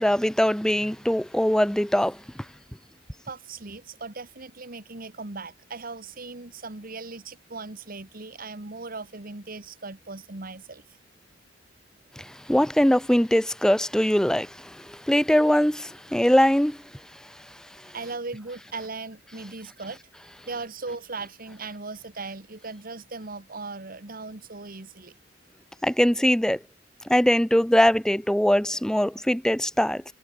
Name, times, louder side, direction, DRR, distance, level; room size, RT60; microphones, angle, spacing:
voice 1, 0.0-2.2 12.2-16.8 25.8-26.6 27.1-30.0, equal, 5° left, 0.6 m, -22 dB
voice 2, 3.3-10.8 17.9-20.0 20.5-25.2, right 3 dB, 50° right, 1.8 m, -38 dB
head